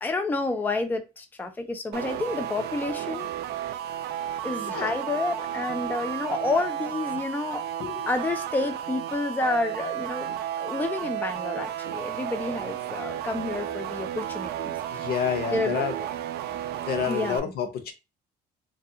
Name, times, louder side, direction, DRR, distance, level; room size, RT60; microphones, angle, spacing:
voice 1, 0.0-3.3 4.4-7.6 8.1-15.1 15.5-16.1 17.1-17.5, left 2 dB, 10° left, 0.4 m, -30 dB
sound 1, 1.9-17.4, right 11 dB, 70° right, 0.4 m, -33 dB
voice 2, 14.9-15.9 16.9-17.9, left 8 dB, 65° left, 0.7 m, -29 dB
2.4 x 2.2 x 2.7 m
cardioid pair, 110°, 17 cm